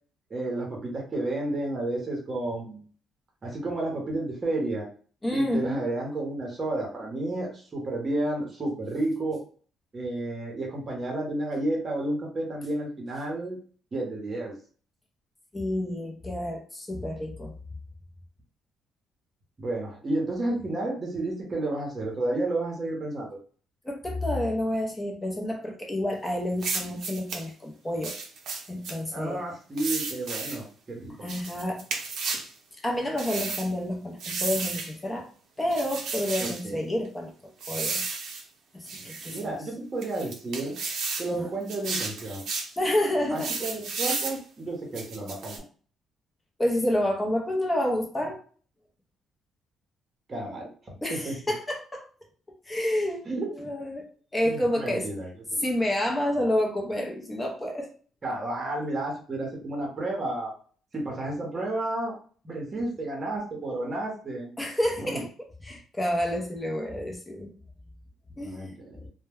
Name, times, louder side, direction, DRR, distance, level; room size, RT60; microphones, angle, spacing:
voice 1, 0.3-2.8 3.4-4.9 5.3-9.4 9.9-13.6 13.9-14.5 19.6-23.4 29.1-31.2 36.4-36.8 39.0-40.8 41.2-42.4 43.3-45.6 50.3-50.7 51.1-51.4 53.3-53.5 54.4-55.3 58.2-60.5 60.9-62.2 62.4-64.5 65.0-65.2 68.4-69.1, right 2 dB, 30° right, 0 dB, 0.8 m, -31 dB
voice 2, 5.2-5.8 15.5-17.5 23.8-28.2 28.7-29.4 31.2-31.8 32.3-32.4 32.8-35.3 35.6-38.0 38.7-39.5 41.4-41.5 42.8-43.7 46.6-48.4 51.0-52.0 52.7-53.3 53.5-55.1 55.6-57.9 64.6-65.3 65.6-67.5 68.4-68.7, left 1 dB, 15° left, 0 dB, 0.6 m, -29 dB
sound 1, 26.6-27.4 28.0-29.0 29.8-30.6 31.3-32.5 33.2-33.7 34.2-34.9 35.7-36.6 37.6-38.4 38.9-39.4 40.0-41.3 41.7-42.7 43.4-44.4 44.9-45.6, right 4 dB, 65° right, 0.6 m, -33 dB
2.1 x 2.1 x 3.4 m, 0.42 s
cardioid pair, 120°, 0 cm